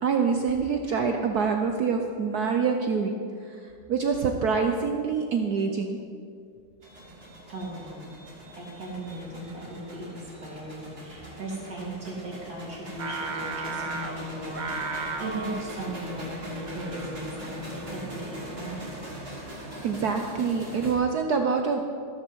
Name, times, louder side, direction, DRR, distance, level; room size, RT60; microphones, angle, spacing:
voice 1, 0.0-3.1 3.9-6.0 19.8-21.8, right 5 dB, 60° right, 4 dB, 1.1 m, -25 dB
sound 1, 6.8-20.9, right 1 dB, 25° right, 2.9 m, -41 dB
voice 2, 7.5-8.1 8.6-19.0 20.8-20.9, right 1 dB, 45° right, -5 dB, 3.7 m, -37 dB
Singing, 13.0-18.2, right 4 dB, 85° right, 0.4 m, -36 dB
15.0 x 13.5 x 4.6 m, 2.3 s
omnidirectional pair, 2.3 m